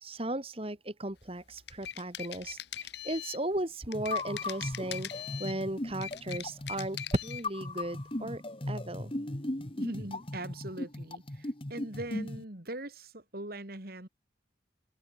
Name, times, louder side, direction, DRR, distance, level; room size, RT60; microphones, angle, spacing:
voice 1, 0.0-8.4 8.7-9.1, right 1 dB, 30° right, 2.0 m, -36 dB
sound 1, 1.5-3.5 3.9-5.6 5.9-7.5, left 11 dB, 60° left, 1.3 m, -41 dB
sound 2, 3.9-12.4, left 2 dB, 30° left, 1.5 m, -37 dB
voice 2, 9.8-14.1, right 1 dB, 50° right, 2.9 m, -41 dB
head